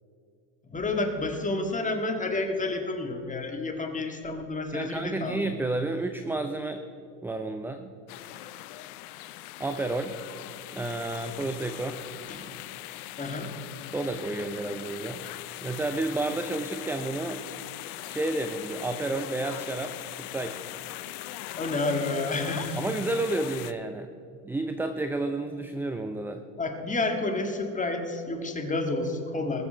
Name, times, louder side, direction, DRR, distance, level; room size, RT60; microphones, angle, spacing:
voice 1, 0.7-5.4 12.3-12.5 13.2-13.5 21.5-22.8 26.6-29.7, left 2 dB, 15° left, 4 dB, 1.8 m, -30 dB
voice 2, 4.7-6.8 7.2-7.9 9.6-10.2 10.7-12.0 13.9-15.2 15.6-17.4 18.1-20.6 22.8-24.1 24.4-26.4, right 2 dB, 5° right, 8 dB, 0.4 m, -31 dB
sound 1, 8.1-23.7, left 15 dB, 75° left, 0.7 m, -40 dB
20.0 x 6.9 x 5.1 m, 2.5 s
supercardioid pair, 105°, 44 cm